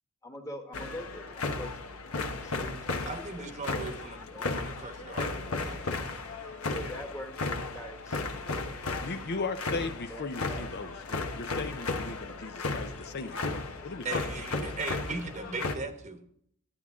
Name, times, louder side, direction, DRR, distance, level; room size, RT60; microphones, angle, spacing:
voice 1, 0.2-2.0 2.3-3.8 4.3-4.6 6.7-8.2 10.1-10.6, equal, 15° left, 4 dB, 1.4 m, -44 dB
sound 1, 0.7-15.8, left 3 dB, 75° left, 1.2 m, -35 dB
voice 2, 3.0-5.9 14.0-16.2, right 3 dB, 35° right, 7 dB, 1.0 m, -38 dB
voice 3, 9.0-13.4 13.8-14.2, left 3 dB, 50° left, 9 dB, 0.6 m, -37 dB
11.5 x 9.4 x 3.7 m, 0.68 s
head